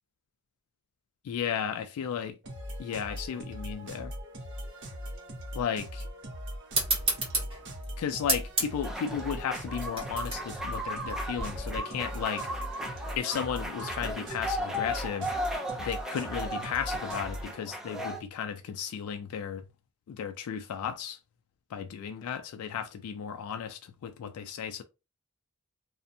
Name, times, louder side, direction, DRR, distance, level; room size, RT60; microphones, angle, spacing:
voice 1, 1.2-2.4 2.8-4.1 5.5-6.0 8.0-12.5 13.2-15.3 15.8-19.6 20.1-21.2 21.7-24.8, left 8 dB, 90° left, 0.3 m, -34 dB
sound 1, 2.4-17.6, equal, 55° right, 0.6 m, -40 dB
sound 2, 6.7-11.8, right 2 dB, 25° right, 1.2 m, -32 dB
sound 3, 8.8-18.2, equal, ahead, 0.3 m, -36 dB
2.6 x 2.1 x 2.5 m
head